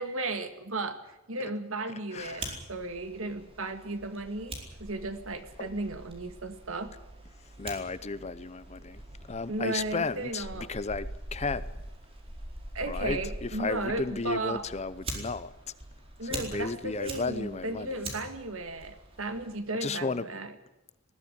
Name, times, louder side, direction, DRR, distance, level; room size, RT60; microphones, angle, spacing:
voice 1, 0.0-7.0 9.5-10.7 12.7-14.6 16.2-20.5, right 2 dB, 65° right, 2.1 m, -35 dB
voice 2, 2.1-2.6 5.6-5.7 7.6-9.0 9.3-11.6 12.9-15.5 16.2-18.1 19.8-20.3, left 4 dB, 30° left, 0.7 m, -34 dB
Fire, 2.2-19.6, right 1 dB, 25° right, 4.4 m, -43 dB
20.0 x 15.0 x 9.9 m
head